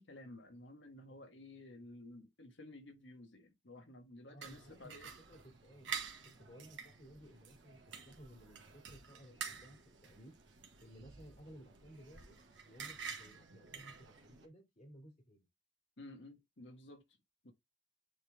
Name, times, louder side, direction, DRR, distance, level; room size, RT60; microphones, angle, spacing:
voice 1, 0.0-5.1 16.0-17.0 17.4-17.5, left 1 dB, 70° left, 1.6 m, -53 dB
voice 2, 4.3-5.0 5.3-5.9 6.2-10.4 10.8-12.4 12.6-15.5, equal, 40° left, 2.7 m, -57 dB
sound 1, 4.4-14.4, right 6 dB, 75° right, 1.6 m, -49 dB
8.9 x 3.5 x 3.5 m
head